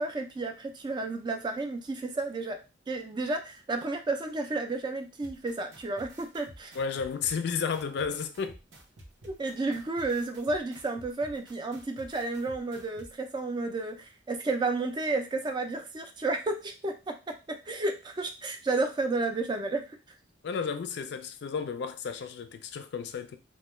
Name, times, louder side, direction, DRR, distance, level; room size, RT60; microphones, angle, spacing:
voice 1, 0.0-2.6 2.9-6.8 9.2-16.9 17.7-19.8, right 3 dB, 25° right, 0.3 m, -31 dB
sound 1, 5.2-13.1, right 1 dB, 90° right, 0.7 m, -50 dB
voice 2, 6.7-8.6 20.4-23.4, left 6 dB, 65° left, 0.3 m, -32 dB
2.1 x 2.1 x 3.0 m
head